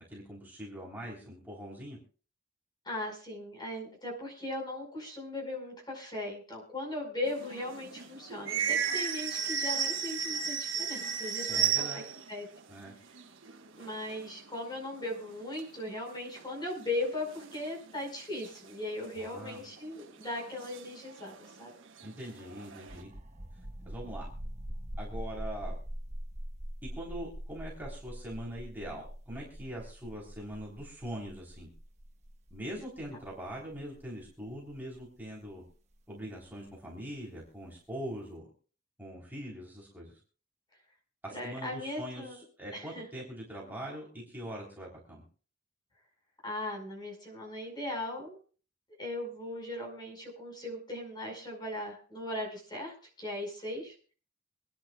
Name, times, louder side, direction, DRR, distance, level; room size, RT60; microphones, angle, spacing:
voice 1, 0.1-2.0 11.5-12.0 12.7-12.9 19.1-19.6 22.0-23.1 23.9-24.3 25.0-25.7 27.0-31.7 32.5-35.6 36.1-38.5 39.0-40.2 41.2-45.2, equal, 10° right, -4 dB, 3.6 m, -42 dB
voice 2, 2.8-12.0 12.3-12.5 13.7-21.7 41.3-42.4 42.7-43.0 46.4-48.4 49.0-53.9, left 1 dB, 20° left, 0 dB, 5.0 m, -38 dB
sound 1, 7.3-12.3 12.6-12.7 12.9-14.3 14.7-14.8 15.1-15.6 16.4-16.5 17.0-17.9 18.4-18.5 19.6-19.8 20.2-21.6 22.0-23.0, right 7 dB, 80° right, 1.4 m, -34 dB
sound 2, 22.8-36.2, equal, 35° right, 1.3 m, -43 dB
26.0 x 10.5 x 2.3 m, 0.40 s
head